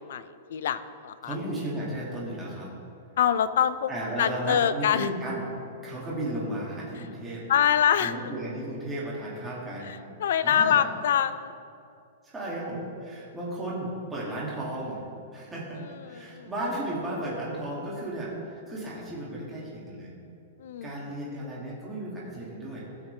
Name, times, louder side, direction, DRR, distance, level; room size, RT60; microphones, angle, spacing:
voice 1, 0.0-1.4 3.2-3.9 4.2-5.1 7.5-8.1 9.9-11.5 16.1-16.5 20.6-20.9, left 9 dB, 65° left, 13 dB, 0.4 m, -25 dB
voice 2, 1.2-2.7 3.9-5.5 5.8-7.5 8.0-9.9 10.4-10.8 12.2-15.0 15.3-20.1 20.8-22.9, right 1 dB, 10° right, -7 dB, 1.9 m, -34 dB
15.0 x 6.0 x 3.2 m, 2.5 s
supercardioid pair, 165°, 0 cm